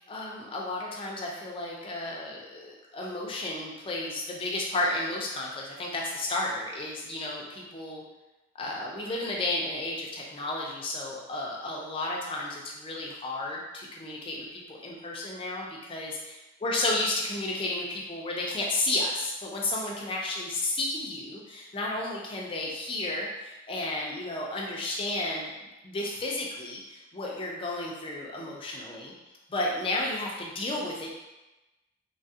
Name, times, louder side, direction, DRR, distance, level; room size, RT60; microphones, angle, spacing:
voice 1, 0.1-8.0 8.6-16.2 16.6-29.1 29.5-31.1, left 2 dB, 25° left, -2 dB, 0.4 m, -32 dB
3.2 x 2.3 x 2.7 m, 1.1 s
head